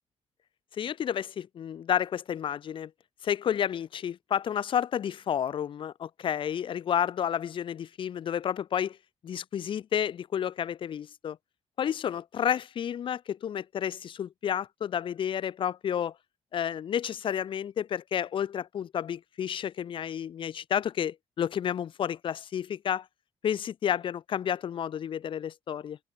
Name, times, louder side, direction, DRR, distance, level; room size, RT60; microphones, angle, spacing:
voice 1, 0.8-2.9 3.2-9.0 9.2-11.4 11.8-16.1 16.5-23.1 23.4-26.0, left 9 dB, 50° left, 0.5 m, -31 dB
cardioid pair, 105°, 11 cm